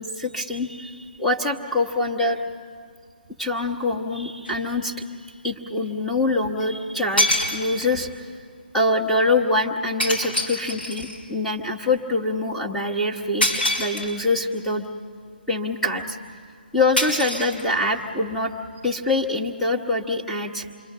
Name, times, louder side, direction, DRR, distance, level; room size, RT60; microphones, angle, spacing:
voice 1, 0.0-2.4 3.4-4.9 5.4-8.3 8.7-14.8 15.5-16.2 16.7-18.5 18.8-20.7, left 2 dB, 5° left, 1 dB, 1.3 m, -24 dB
sound 1, 4.5-4.6 6.6-6.7 7.2-8.0 10.0-11.2 13.4-14.4 17.0-18.1, left 1 dB, 90° left, 5.4 m, -25 dB
27.0 x 23.5 x 6.8 m, 2.3 s
figure-of-eight pair, 150°, 5 cm